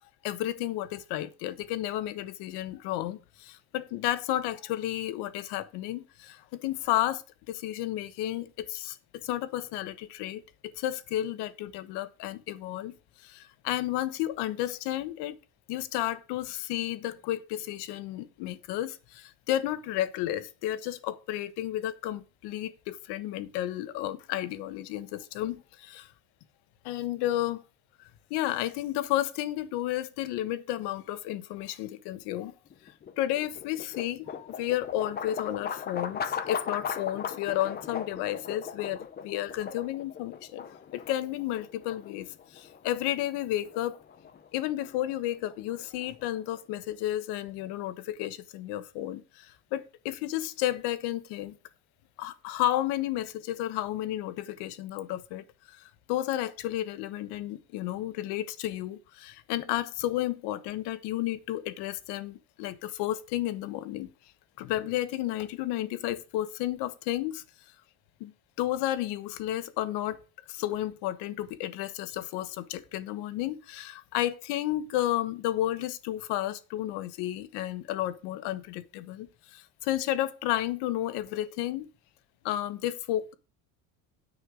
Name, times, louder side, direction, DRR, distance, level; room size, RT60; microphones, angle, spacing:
voice 1, 0.2-7.2 7.5-12.9 13.2-15.4 15.7-26.1 26.8-27.6 28.0-32.5 33.2-44.0 44.5-51.5 52.2-64.1 64.6-67.4 68.2-68.3 68.6-70.2 70.5-81.9 82.4-83.3, left 14 dB, 70° left, 1.3 m, -32 dB
sound 1, 32.7-46.8, left 7 dB, 25° left, 0.8 m, -39 dB
10.0 x 5.5 x 6.3 m
cardioid pair, 155°, 41 cm